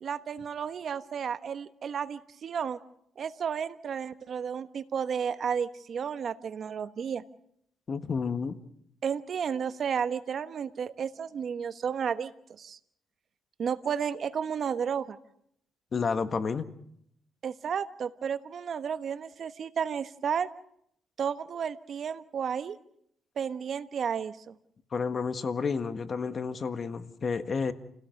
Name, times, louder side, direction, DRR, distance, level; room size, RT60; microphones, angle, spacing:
voice 1, 0.0-2.8 3.2-7.2 9.0-12.8 13.6-15.2 17.4-20.5 21.2-22.8 23.4-24.5, right 7 dB, 55° right, 12 dB, 1.1 m, -32 dB
voice 2, 7.9-8.6 15.9-16.7 24.9-27.7, left 5 dB, 40° left, 10 dB, 1.6 m, -30 dB
28.5 x 17.0 x 6.5 m, 0.72 s
cardioid pair, 90°, 0 cm